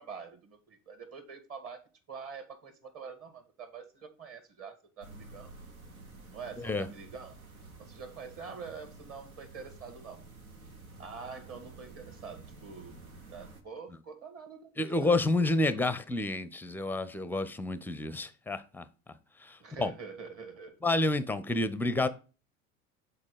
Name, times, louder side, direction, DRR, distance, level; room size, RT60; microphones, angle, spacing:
voice 1, 0.0-5.5 6.3-7.4 7.8-10.3 11.0-13.0 13.3-14.9 15.4-15.8 19.6-20.8, right 5 dB, 35° right, 1.7 m, -46 dB
sound 1, 5.0-13.6, right 3 dB, 85° right, 1.2 m, -51 dB
voice 2, 14.8-18.9 19.4-19.9 20.8-22.1, left 2 dB, 5° left, 0.5 m, -29 dB
7.5 x 4.1 x 4.7 m
figure-of-eight pair, 75°, 42 cm